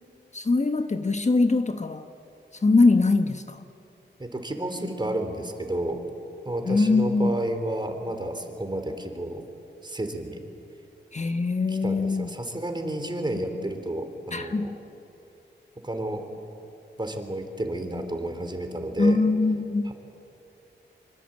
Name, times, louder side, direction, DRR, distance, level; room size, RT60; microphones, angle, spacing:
voice 1, 0.3-2.1 2.6-3.6 6.6-7.4 11.1-12.3 14.3-14.8 19.0-19.9, left 3 dB, 40° left, 7 dB, 1.2 m, -22 dB
voice 2, 4.2-6.0 6.5-9.5 9.8-10.4 11.7-14.8 15.8-16.3 17.0-19.2 19.8-19.9, right 1 dB, 25° right, 6 dB, 3.8 m, -31 dB
25.5 x 24.5 x 9.0 m, 2.8 s
wide cardioid pair, 70°, 19 cm